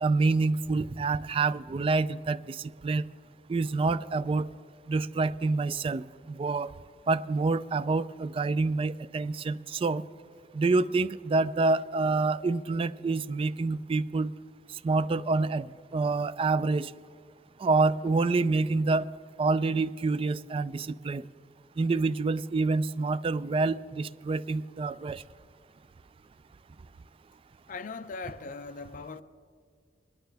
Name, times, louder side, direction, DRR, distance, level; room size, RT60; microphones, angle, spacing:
voice 1, 0.0-3.0 3.5-4.5 4.9-6.7 7.1-10.0 10.5-14.3 14.8-16.9 17.6-19.0 19.4-21.2 21.8-25.2, right 3 dB, 30° right, 0.3 m, -27 dB
voice 2, 27.7-29.2, left 4 dB, 50° left, 0.5 m, -39 dB
21.5 x 11.5 x 3.4 m
head